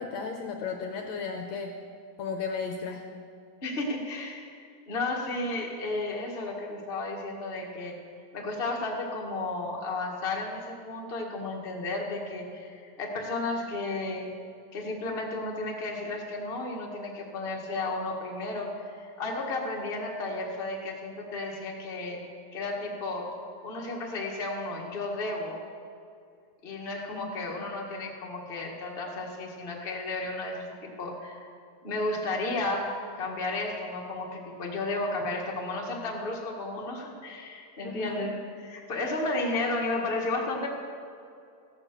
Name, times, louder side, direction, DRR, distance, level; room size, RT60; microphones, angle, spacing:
voice 1, 0.0-1.7 2.2-3.0 27.1-27.5 37.8-38.3, left 5 dB, 75° left, 3 dB, 1.7 m, -35 dB
voice 2, 3.6-8.0 8.3-14.3 14.7-22.2 22.5-23.4 23.6-25.6 26.6-31.5 31.8-40.7, left 2 dB, 55° left, 0 dB, 0.6 m, -33 dB
15.5 x 8.8 x 6.6 m, 2.4 s
omnidirectional pair, 3.9 m